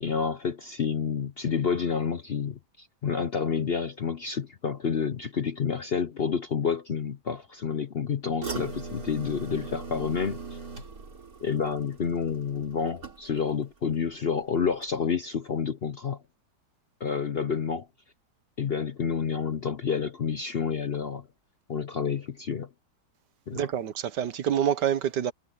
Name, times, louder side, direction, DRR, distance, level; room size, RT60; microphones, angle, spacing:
voice 1, 0.0-10.4 11.4-16.2 17.0-17.9 18.6-21.2 21.7-22.7 23.5-23.7, left 6 dB, 50° left, 0.7 m, -29 dB
sound 1, 8.4-13.6 13.9-14.4 14.8-14.9, right 4 dB, 55° right, 4.3 m, -40 dB
voice 2, 23.5-25.3, right 9 dB, 80° right, 1.7 m, -27 dB
omnidirectional pair, 1.8 m